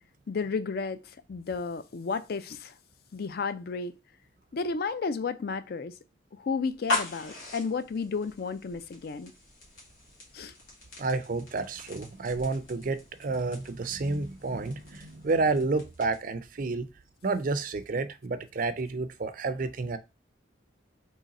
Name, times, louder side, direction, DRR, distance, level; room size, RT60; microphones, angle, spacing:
voice 1, 0.3-1.0 1.3-2.7 3.1-4.0 4.5-5.9 6.3-9.3 10.3-10.5, left 4 dB, 55° left, 0.4 m, -32 dB
sound 1, 6.7-16.4, left 3 dB, 80° left, 2.2 m, -40 dB
voice 2, 11.0-16.9 17.2-20.0, right 3 dB, 45° right, 0.4 m, -30 dB
3.9 x 3.1 x 4.1 m
head